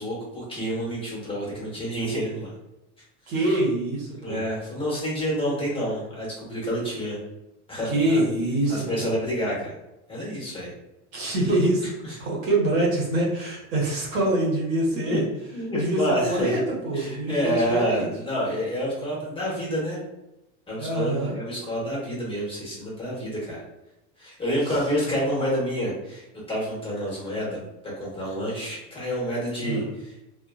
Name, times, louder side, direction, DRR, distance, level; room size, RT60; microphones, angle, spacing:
voice 1, 0.0-2.5 4.2-7.2 7.7-8.2 8.7-9.7 10.1-10.7 15.1-15.2 15.5-16.6 16.9-20.0 20.7-23.6 24.2-30.1, equal, 10° left, -6 dB, 1.3 m, -28 dB
voice 2, 3.3-4.4 7.8-9.1 11.1-11.9 12.2-15.2 15.8-18.1 20.8-21.3 24.7-24.8 29.6-29.8, right 1 dB, 75° right, -4 dB, 1.3 m, -25 dB
2.6 x 2.5 x 2.4 m, 0.94 s
supercardioid pair, 115°, 43 cm